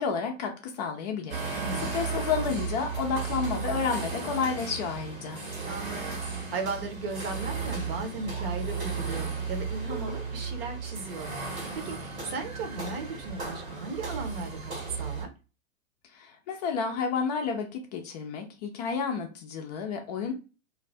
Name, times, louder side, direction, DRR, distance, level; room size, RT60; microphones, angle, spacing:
voice 1, 0.0-1.6 1.9-5.4 16.1-20.3, left 6 dB, 30° left, 0.5 m, -31 dB
sound 1, 1.3-15.2, right 5 dB, 80° right, 1.3 m, -34 dB
voice 2, 1.5-1.9 5.6-15.3, right 3 dB, 45° right, 0.8 m, -37 dB
2.6 x 2.4 x 3.2 m
figure-of-eight pair, 100°, 40 cm